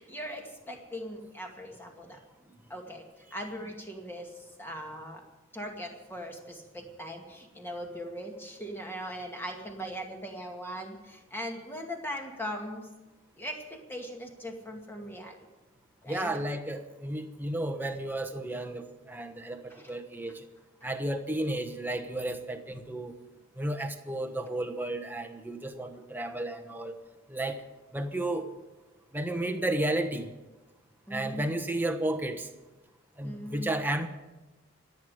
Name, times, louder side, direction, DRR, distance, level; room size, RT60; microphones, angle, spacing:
voice 1, 0.0-2.2 2.7-5.2 5.5-12.9 13.4-15.4 16.0-16.3 19.7-19.9 31.1-31.4 33.2-33.7, equal, 10° left, 1 dB, 2.2 m, -40 dB
voice 2, 16.1-20.4 20.8-23.1 23.6-26.9 27.3-27.6 27.9-28.5 29.1-30.3 31.1-32.5 33.2-34.1, right 1 dB, 10° right, 5 dB, 1.1 m, -32 dB
26.5 x 9.4 x 5.0 m, 1.1 s
head